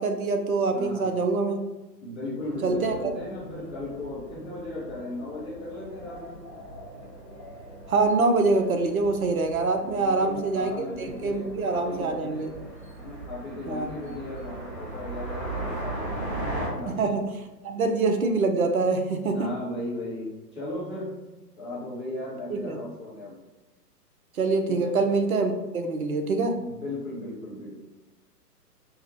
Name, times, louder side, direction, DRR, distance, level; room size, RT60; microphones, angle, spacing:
voice 1, 0.0-1.6 2.6-3.1 7.9-12.5 13.7-13.9 16.9-17.2 17.6-19.5 22.5-22.8 24.4-26.5, right 3 dB, 60° right, 5 dB, 0.6 m, -25 dB
voice 2, 0.6-1.1 2.0-6.4 9.8-12.5 13.0-16.9 19.3-20.3 20.5-21.1 21.6-23.4 24.7-24.9 26.5-27.8, left 1 dB, 5° left, -18 dB, 0.5 m, -36 dB
sound 1, 2.4-16.7, right 1 dB, 40° right, 1.3 m, -39 dB
5.5 x 2.1 x 2.8 m, 1.1 s
figure-of-eight pair, 120°, 49 cm